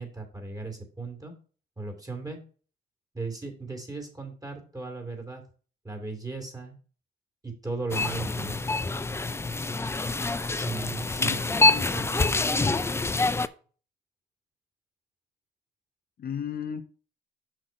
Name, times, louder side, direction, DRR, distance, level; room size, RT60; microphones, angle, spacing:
voice 1, 0.0-1.3 1.8-2.4 3.1-5.4 5.8-6.8 7.4-8.6 10.5-11.4 11.9-12.5, right 3 dB, 20° right, 2.7 m, -37 dB
sound 1, 7.9-13.5, left 3 dB, 15° left, 0.4 m, -26 dB
voice 2, 11.2-11.9 16.2-16.8, left 8 dB, 50° left, 0.7 m, -35 dB
6.5 x 6.0 x 4.5 m
cardioid pair, 90°, 20 cm